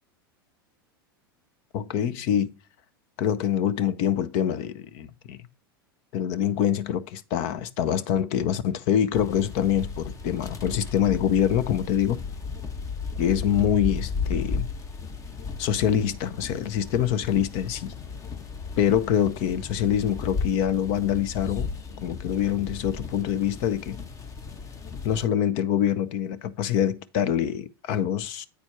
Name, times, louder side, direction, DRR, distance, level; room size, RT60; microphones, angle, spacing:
voice 1, 1.7-2.5 3.2-5.4 6.1-12.2 13.2-14.7 15.6-17.9 18.8-21.7 22.0-24.0 25.0-28.5, left 9 dB, 55° left, 0.8 m, -25 dB
sound 1, 9.1-25.3, left 5 dB, 25° left, 1.1 m, -35 dB
8.5 x 4.4 x 4.5 m
hypercardioid pair, 95°, 12 cm